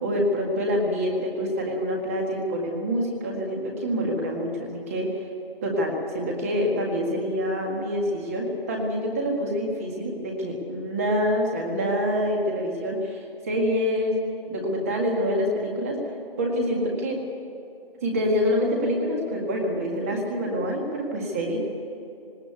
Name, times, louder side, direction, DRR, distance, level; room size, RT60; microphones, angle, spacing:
voice 1, 0.0-5.1 5.6-14.2 14.5-16.0 16.4-17.2 18.0-21.6, equal, 15° right, 0 dB, 1.9 m, -26 dB
19.0 x 19.0 x 8.2 m, 2.7 s
hypercardioid pair, 175°, 29 cm